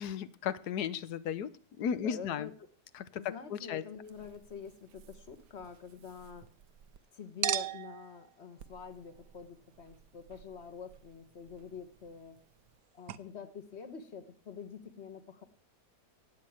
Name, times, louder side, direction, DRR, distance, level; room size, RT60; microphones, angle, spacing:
voice 1, 0.0-1.5 1.8-2.5 2.9-3.8, left 8 dB, 75° left, 1.3 m, -35 dB
voice 2, 2.0-2.5 3.2-6.5 7.1-12.4 12.9-15.4, left 6 dB, 40° left, 1.7 m, -46 dB
Chink clink, 4.0-7.0 7.4-12.8 13.1-13.2, right 11 dB, 90° right, 1.4 m, -42 dB
16.5 x 5.9 x 9.0 m
omnidirectional pair, 1.7 m